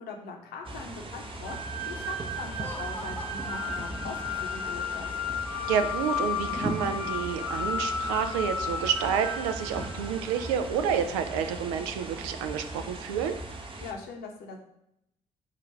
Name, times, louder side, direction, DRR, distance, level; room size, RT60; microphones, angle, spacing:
voice 1, 0.0-5.2 13.8-14.6, left 4 dB, 60° left, 2 dB, 0.9 m, -41 dB
sound 1, 0.6-13.9, right 2 dB, 30° right, 0.7 m, -39 dB
sound 2, 1.5-10.6, left 4 dB, 10° right, 1.0 m, -34 dB
Laughter, 2.4-4.8, equal, 10° left, 0.7 m, -45 dB
voice 2, 5.6-13.4, right 7 dB, 70° right, 8 dB, 0.4 m, -29 dB
4.7 x 2.4 x 4.4 m, 0.79 s
figure-of-eight pair, 45°, 18 cm